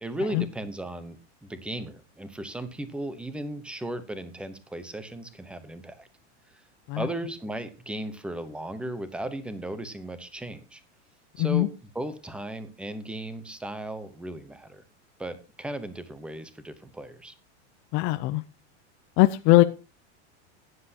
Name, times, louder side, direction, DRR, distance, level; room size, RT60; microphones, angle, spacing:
voice 1, 0.0-6.1 6.5-6.6 7.0-10.8 11.4-11.7 11.9-14.8 15.2-17.3, right 1 dB, 5° right, 12 dB, 0.7 m, -36 dB
voice 2, 17.9-18.4 19.2-19.6, left 18 dB, 35° left, 10 dB, 0.5 m, -20 dB
15.0 x 10.0 x 2.8 m, 0.30 s
supercardioid pair, 160°, 36 cm